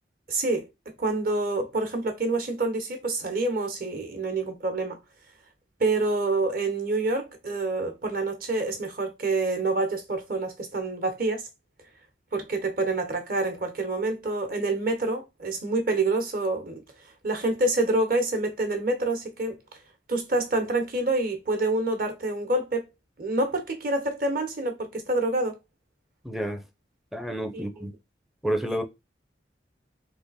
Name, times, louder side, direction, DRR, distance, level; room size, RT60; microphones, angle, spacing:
voice 1, 0.3-0.7 1.0-5.0 5.8-11.5 12.3-16.8 17.2-19.6 20.1-22.8 23.2-25.6 27.5-27.9, right 2 dB, 50° right, 1.2 m, -27 dB
voice 2, 26.2-26.6 27.1-27.9 28.4-28.8, right 1 dB, ahead, 0.5 m, -29 dB
3.7 x 3.3 x 4.1 m
head